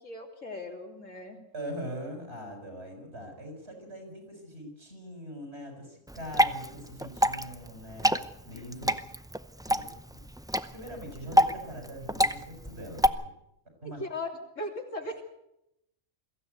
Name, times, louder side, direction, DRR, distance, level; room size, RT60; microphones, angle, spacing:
voice 1, 0.0-1.4 14.0-14.3 14.6-15.2, left 2 dB, 75° left, 2 dB, 3.6 m, -37 dB
voice 2, 1.5-8.9 9.7-9.9 10.7-13.1 13.8-14.0 15.1-15.2, equal, 55° right, 3 dB, 7.0 m, -42 dB
Water / Drip, 6.1-13.1, equal, 5° right, 0.4 m, -28 dB
22.5 x 16.0 x 8.2 m, 0.84 s
omnidirectional pair, 1.3 m